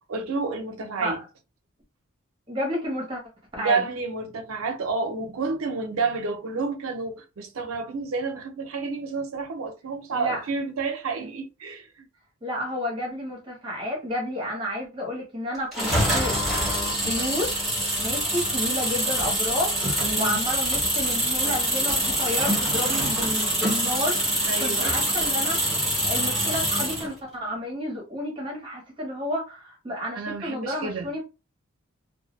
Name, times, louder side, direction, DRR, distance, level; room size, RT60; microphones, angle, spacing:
voice 1, 0.1-1.2 3.6-12.1 20.0-20.4 24.5-25.0 30.1-31.1, right 4 dB, 75° right, 0.5 m, -30 dB
voice 2, 2.5-3.2 3.6-3.8 10.1-10.4 12.4-16.7 17.0-17.5 18.0-25.6 26.0-31.2, left 1 dB, 25° right, 0.7 m, -31 dB
sound 1, 15.7-27.1, right 1 dB, ahead, 1.0 m, -25 dB
2.2 x 2.0 x 3.0 m
head